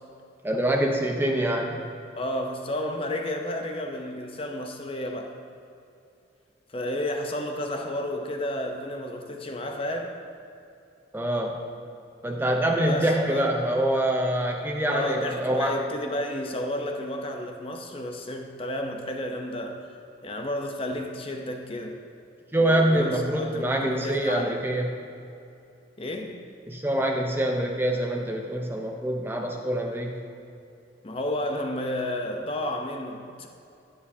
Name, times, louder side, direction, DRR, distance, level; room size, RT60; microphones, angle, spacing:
voice 1, 0.4-1.8 11.1-11.6 12.2-15.7 22.5-24.9 26.7-30.2, right 1 dB, 10° right, 1 dB, 0.6 m, -25 dB
voice 2, 2.2-5.4 6.7-10.2 12.8-13.5 14.9-19.8 20.2-22.0 22.6-24.6 26.0-26.4 31.0-33.5, left 1 dB, 30° left, 3 dB, 0.7 m, -31 dB
10.5 x 9.8 x 2.7 m, 2.6 s
head